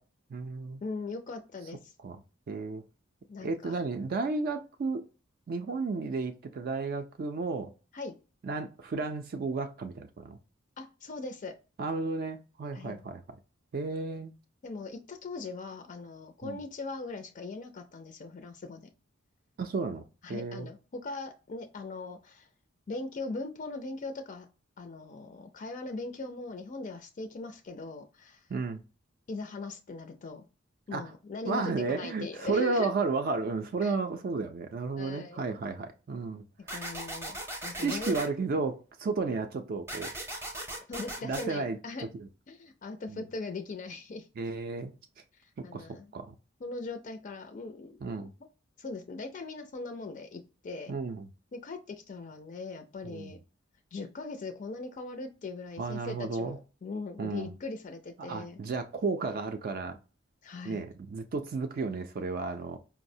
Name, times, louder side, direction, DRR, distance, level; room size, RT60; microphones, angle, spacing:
voice 1, 0.3-0.8 2.0-2.2 2.5-2.8 3.4-5.0 5.5-7.7 8.4-10.4 11.8-13.2 13.7-14.3 16.4-16.6 19.6-20.0 20.3-20.7 28.5-28.8 30.9-31.0 31.5-36.4 37.8-40.1 41.2-41.8 42.2-42.3 43.1-43.2 44.4-44.9 45.6-45.9 46.1-46.3 48.0-48.3 50.9-51.3 53.0-53.3 55.8-56.6 57.2-57.5 58.2-60.0 60.6-62.8, right 4 dB, 50° right, 0.3 m, -33 dB
voice 2, 0.8-1.9 3.3-3.8 7.9-8.1 10.8-11.6 12.7-13.0 14.6-18.8 20.2-22.5 22.9-24.5 24.8-28.5 29.3-30.5 30.9-32.9 33.8-34.0 35.0-35.4 36.7-38.2 40.9-42.1 42.5-44.3 45.3-46.1 46.6-48.2 48.8-50.9 51.5-53.4 53.9-58.6 60.4-60.8, left 3 dB, 40° left, 0.4 m, -40 dB
sound 1, 36.7-38.3 39.9-41.4, right 1 dB, 15° right, 0.6 m, -38 dB
4.6 x 2.0 x 2.6 m
head